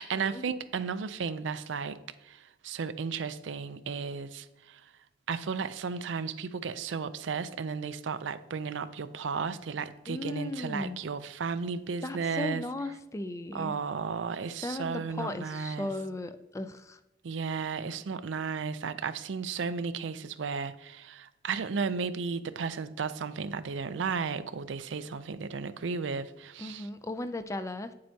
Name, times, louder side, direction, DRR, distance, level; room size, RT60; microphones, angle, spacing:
voice 1, 0.0-4.9 5.3-12.6 13.5-15.9 17.2-26.9, right 5 dB, 75° right, 12 dB, 0.5 m, -34 dB
voice 2, 10.1-11.0 12.0-13.7 14.6-17.0 26.6-27.9, left 2 dB, 15° left, 10 dB, 0.3 m, -36 dB
9.3 x 7.7 x 2.8 m, 0.96 s
head